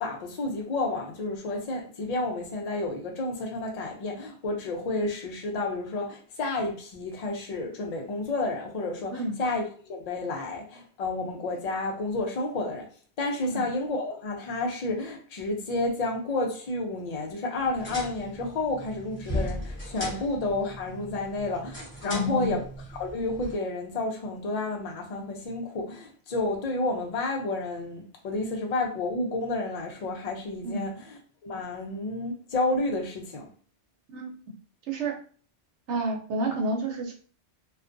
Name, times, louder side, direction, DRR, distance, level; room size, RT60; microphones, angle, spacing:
voice 1, 0.0-12.9 13.2-22.6 23.0-33.5, left 2 dB, 45° left, 0.5 m, -31 dB
sound 1, 17.6-23.5, equal, 10° left, 1.0 m, -38 dB
voice 2, 22.1-22.5 30.6-30.8 34.1-34.3 34.9-35.1 35.9-37.1, right 1 dB, 75° right, 1.0 m, -29 dB
2.4 x 2.2 x 2.5 m
omnidirectional pair, 1.2 m